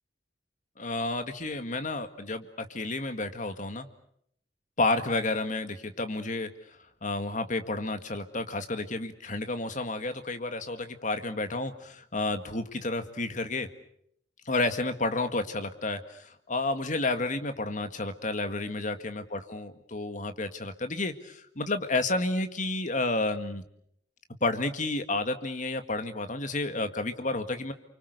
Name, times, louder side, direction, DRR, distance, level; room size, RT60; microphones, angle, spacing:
voice 1, 0.8-3.9 4.8-6.5 7.0-13.7 14.5-23.6 24.4-27.7, left 2 dB, 45° left, 8 dB, 1.9 m, -31 dB
29.0 x 25.0 x 6.7 m, 0.71 s
head